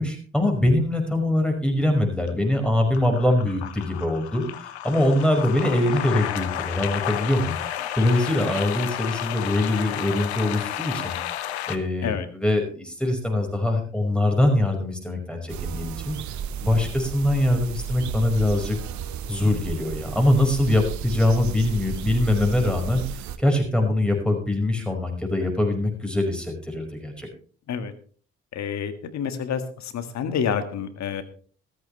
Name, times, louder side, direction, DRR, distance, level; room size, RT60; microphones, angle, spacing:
voice 1, 0.0-16.2 16.6-18.8 19.3-27.3, left 1 dB, 5° left, 3 dB, 5.4 m, -23 dB
sound 1, 2.3-2.6 2.9-11.8, left 12 dB, 90° left, 0.8 m, -32 dB
sound 2, 15.5-23.4, right 8 dB, 65° right, 1.0 m, -33 dB
voice 2, 28.5-31.2, left 7 dB, 55° left, 9 dB, 1.8 m, -28 dB
14.5 x 14.0 x 3.3 m, 0.43 s
hypercardioid pair, 50°, 32 cm